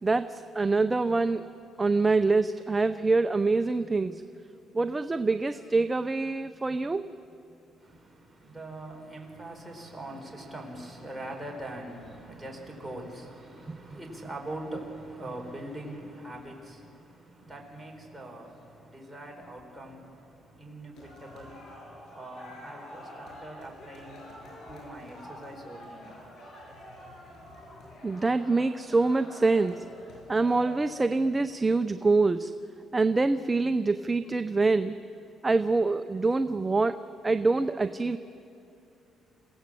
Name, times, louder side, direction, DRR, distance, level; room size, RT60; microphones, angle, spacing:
voice 1, 0.0-1.4 1.8-4.2 4.7-7.1 13.7-13.8 28.0-29.8 30.3-32.5 32.9-34.9 35.4-37.0 37.2-38.2, right 3 dB, 20° right, 10 dB, 0.6 m, -25 dB
voice 2, 7.8-26.2, right 1 dB, 5° right, -1 dB, 4.3 m, -42 dB
sound 1, 20.9-31.4, left 1 dB, 65° left, 6.9 m, -47 dB
27.0 x 16.0 x 7.7 m, 2.8 s
cardioid pair, 110°, 0 cm